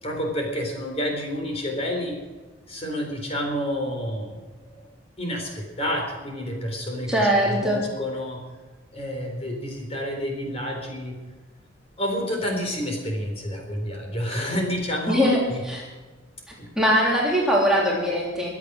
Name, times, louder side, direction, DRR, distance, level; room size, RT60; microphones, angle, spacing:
voice 1, 0.0-2.2 2.7-4.9 5.2-8.4 8.9-11.2 12.0-15.6 16.6-16.7, equal, 35° left, 1 dB, 4.0 m, -29 dB
voice 2, 7.1-7.8 15.1-15.8 16.8-18.5, equal, 5° right, -4 dB, 3.1 m, -21 dB
24.0 x 8.5 x 6.3 m, 1.3 s
head